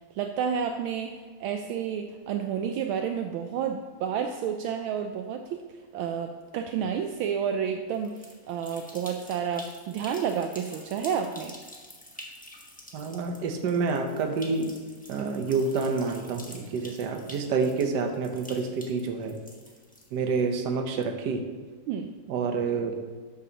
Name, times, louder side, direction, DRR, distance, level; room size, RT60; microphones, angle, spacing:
voice 1, 0.1-11.5 21.9-22.1, right 7 dB, 75° right, 5 dB, 1.3 m, -30 dB
sound 1, 7.9-20.4, left 1 dB, 5° left, 0.6 m, -48 dB
voice 2, 12.9-14.7 15.1-19.4 20.1-21.4 22.3-22.9, right 4 dB, 60° right, 4 dB, 1.4 m, -28 dB
12.5 x 8.5 x 2.9 m, 1.5 s
omnidirectional pair, 2.4 m